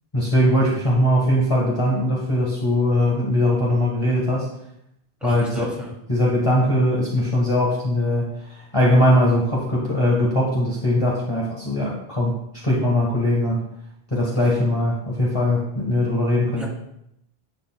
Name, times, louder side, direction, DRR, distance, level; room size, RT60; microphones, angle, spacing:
voice 1, 0.1-4.5 5.2-5.7 6.1-8.3 8.7-12.4 12.6-13.6 14.1-16.6, left 1 dB, 30° left, -4 dB, 1.6 m, -20 dB
voice 2, 5.2-5.9 14.4-14.5 16.6-16.7, equal, ahead, -4 dB, 2.8 m, -34 dB
11.0 x 8.2 x 2.3 m, 0.80 s
omnidirectional pair, 1.0 m